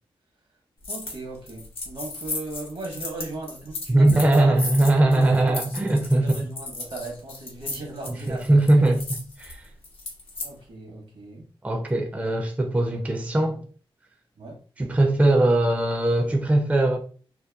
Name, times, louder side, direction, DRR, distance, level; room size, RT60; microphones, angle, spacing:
sound 1, 0.8-1.2 1.5-10.5, left 3 dB, 80° left, 0.7 m, -35 dB
voice 1, 0.9-4.5 5.1-5.6 6.1-8.8 10.4-11.4 14.4-14.6, right 2 dB, 75° right, 1.0 m, -37 dB
voice 2, 3.9-6.5 8.3-9.6 11.6-13.7 14.8-17.0, right 1 dB, 15° right, 0.4 m, -20 dB
2.8 x 2.1 x 2.2 m
wide cardioid pair, 85°, 9 cm